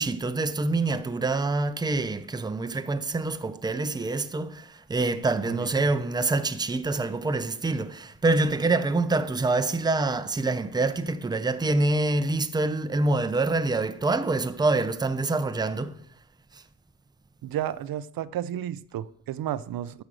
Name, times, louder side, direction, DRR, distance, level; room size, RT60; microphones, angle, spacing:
voice 1, 0.0-16.0 16.5-16.6, right 3 dB, 10° right, 0.5 m, -26 dB
voice 2, 17.4-20.0, right 11 dB, 85° right, 0.6 m, -32 dB
12.5 x 5.2 x 7.6 m
wide cardioid pair, 150°, 34 cm